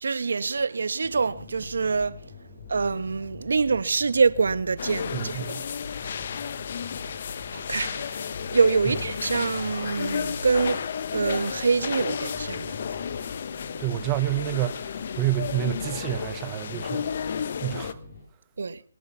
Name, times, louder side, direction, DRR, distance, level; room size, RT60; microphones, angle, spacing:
voice 1, 0.0-2.2 2.7-5.7 7.5-12.7 18.6-18.8, right 4 dB, 70° right, 1.2 m, -25 dB
sound 1, 1.0-18.2, left 3 dB, 20° left, 7.9 m, -44 dB
sound 2, 4.8-17.9, left 7 dB, 45° left, 1.1 m, -33 dB
voice 2, 5.1-5.6 13.8-17.1 17.6-18.0, right 15 dB, 20° right, 0.7 m, -29 dB
23.0 x 10.5 x 5.6 m
hypercardioid pair, 165°, 0 cm